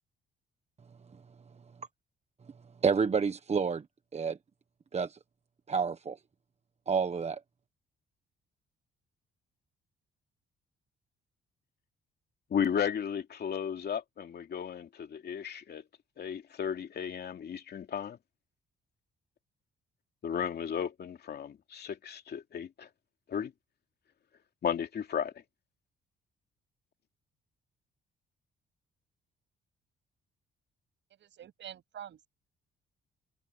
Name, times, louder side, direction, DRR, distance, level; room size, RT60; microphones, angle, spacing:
voice 1, 2.8-3.8 4.1-4.4 4.9-5.2 5.7-6.2 6.9-7.4, right 5 dB, 35° right, 1.1 m, -29 dB
voice 2, 12.5-15.9 16.2-18.2 20.2-22.9 23.3-23.5 24.6-25.3, left 8 dB, 55° left, 2.6 m, -34 dB
voice 3, 31.2-32.3, right 10 dB, 65° right, 7.7 m, -46 dB
cardioid pair, 90°, 20 cm